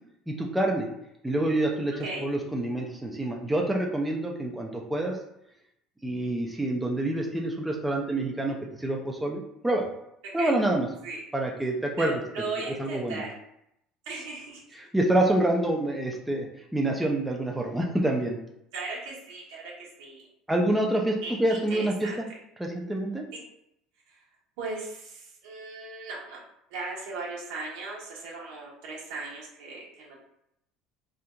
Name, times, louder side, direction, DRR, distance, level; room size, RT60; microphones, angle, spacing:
voice 1, 0.3-0.9 1.2-1.9 2.2-5.2 6.0-9.9 10.3-10.9 11.3-12.2 12.8-13.2 14.8-16.5 16.7-18.4 20.5-22.3 22.6-23.2, right 1 dB, 5° right, -1 dB, 0.5 m, -27 dB
voice 2, 12.0-13.3 14.0-14.6 18.7-20.2 21.2-22.2 23.3-23.4 24.1-24.2 24.6-26.4 26.7-30.2, right 3 dB, 80° right, -4 dB, 1.3 m, -37 dB
3.5 x 2.7 x 2.3 m, 0.77 s
supercardioid pair, 105°, 0 cm